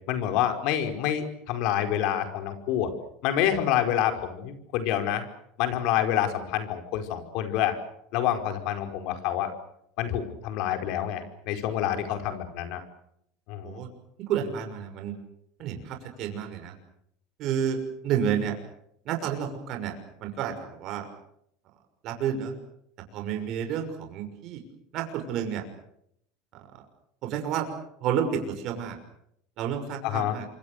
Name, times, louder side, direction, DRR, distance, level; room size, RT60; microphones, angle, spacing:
voice 1, 0.1-2.9 3.2-5.2 5.6-7.8 8.1-9.5 10.0-12.8 13.5-13.8 30.0-30.4, left 10 dB, 60° left, 7 dB, 5.0 m, -27 dB
voice 2, 14.2-15.1 15.6-16.7 17.4-18.6 19.0-19.9 20.2-21.1 22.0-22.5 23.1-24.6 24.9-25.6 26.5-26.6 27.2-27.7 28.0-29.0 29.6-30.5, right 8 dB, 50° right, 4 dB, 6.1 m, -30 dB
28.0 x 25.0 x 6.7 m, 0.73 s
supercardioid pair, 130°, 0 cm